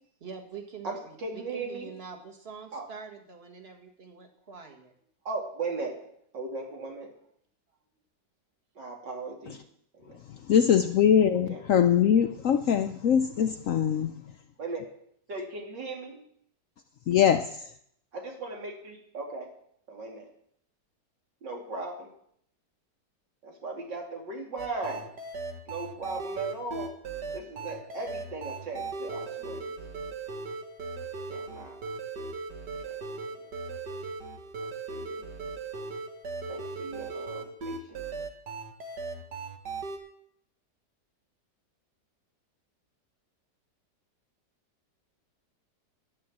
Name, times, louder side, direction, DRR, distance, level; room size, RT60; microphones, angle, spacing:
voice 1, 0.2-4.9, right 6 dB, 35° right, 3 dB, 1.9 m, -45 dB
voice 2, 0.8-1.9 2.7-2.9 5.2-6.0 6.3-7.1 8.8-9.6 9.9-10.1 11.5-11.6 14.6-14.9 15.3-16.2 18.1-19.5 19.9-20.3 21.4-22.1 23.4-25.1 25.7-26.9 27.3-29.7 31.3-31.8 32.8-33.0 34.9-35.3 36.5-38.0, right 3 dB, 85° right, 0 dB, 3.2 m, -37 dB
voice 3, 10.5-14.1 17.1-17.5, left 8 dB, 65° left, 8 dB, 0.8 m, -22 dB
sound 1, 24.6-40.0, right 4 dB, 70° right, 2.0 m, -38 dB
11.5 x 8.6 x 7.4 m, 0.69 s
omnidirectional pair, 1.9 m